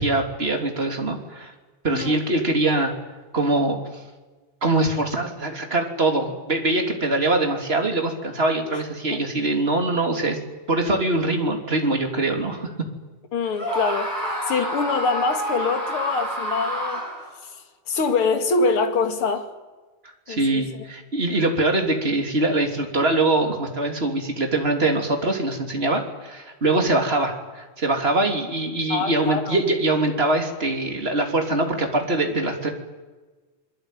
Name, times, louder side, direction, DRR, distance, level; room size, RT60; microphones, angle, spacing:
voice 1, 0.0-1.5 1.8-2.9 3.3-3.8 4.6-10.4 10.7-12.7 20.3-32.7, right 2 dB, 20° right, 3.2 m, -23 dB
voice 2, 1.9-2.2 9.1-9.2 13.3-17.0 17.9-19.5 20.3-20.7 28.9-29.6, left 4 dB, 45° left, 2.8 m, -24 dB
Screaming, 13.5-17.3, equal, 5° left, 6.7 m, -28 dB
27.5 x 22.0 x 9.2 m
omnidirectional pair, 3.6 m